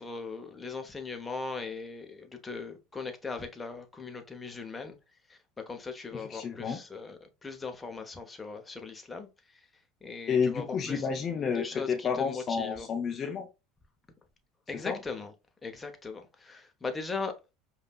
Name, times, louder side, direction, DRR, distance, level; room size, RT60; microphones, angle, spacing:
voice 1, 0.0-5.0 5.3-5.4 5.7-9.3 10.0-11.0 11.5-12.9 14.7-15.3 15.6-17.3, left 4 dB, 20° left, 1.0 m, -39 dB
voice 2, 6.1-6.8 10.3-13.5 14.7-15.0, left 6 dB, 40° left, 0.7 m, -30 dB
5.2 x 2.8 x 2.4 m
hypercardioid pair, 75°, 0 cm